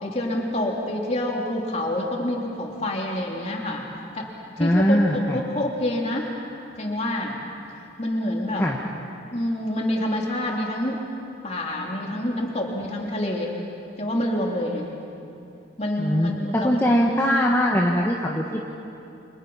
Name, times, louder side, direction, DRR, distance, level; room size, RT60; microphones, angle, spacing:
voice 1, 0.0-3.8 4.1-4.3 4.6-6.3 6.8-7.4 8.0-8.7 9.3-11.0 11.4-13.5 14.0-14.9 15.8-16.8, left 1 dB, 35° left, -1 dB, 3.3 m, -27 dB
voice 2, 4.6-5.4 8.6-8.8 16.0-18.6, equal, 15° left, -2 dB, 1.4 m, -21 dB
29.5 x 26.5 x 5.7 m, 2.7 s
head